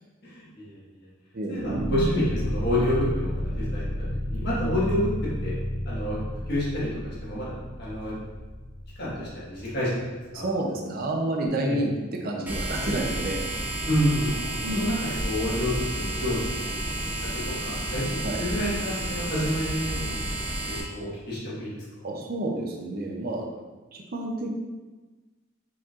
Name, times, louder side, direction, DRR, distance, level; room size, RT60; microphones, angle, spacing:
voice 1, 0.2-1.1 1.5-5.5 5.8-8.2 9.0-10.5 11.6-11.8 13.8-14.4 14.7-16.7 17.2-20.1 20.7-22.1, equal, 50° left, -8 dB, 1.5 m, -29 dB
voice 2, 1.3-1.9 10.3-13.4 14.6-15.0 18.2-18.4 22.0-23.5 23.9-24.5, right 1 dB, 45° right, 1 dB, 0.5 m, -30 dB
sound 1, 1.6-10.7, equal, 60° right, 1.1 m, -32 dB
sound 2, 12.5-20.8, right 1 dB, 10° right, 0.7 m, -31 dB
4.5 x 4.2 x 2.4 m, 1.3 s
head